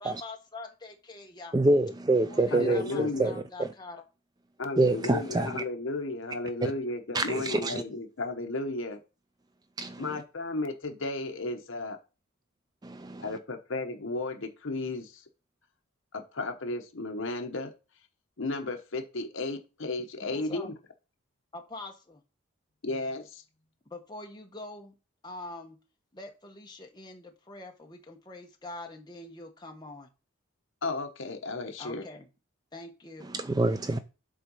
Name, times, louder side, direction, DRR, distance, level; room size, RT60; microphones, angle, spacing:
voice 1, 0.0-1.5 2.3-4.0 20.2-20.7 21.5-22.2 23.9-25.0 25.2-25.8 26.1-30.1 31.8-32.3 32.7-33.3, left 2 dB, 20° left, 1.1 m, -44 dB
voice 2, 1.5-3.7 4.8-5.6 6.6-6.7 7.1-7.8 9.8-10.2 12.8-13.4 33.2-34.0, right 2 dB, 20° right, 0.3 m, -27 dB
voice 3, 2.5-3.4 4.6-9.0 10.0-12.0 13.2-15.1 16.3-17.7 18.4-20.7 22.8-23.4 30.8-32.0, left 2 dB, 65° left, 1.0 m, -34 dB
7.5 x 4.0 x 5.4 m
head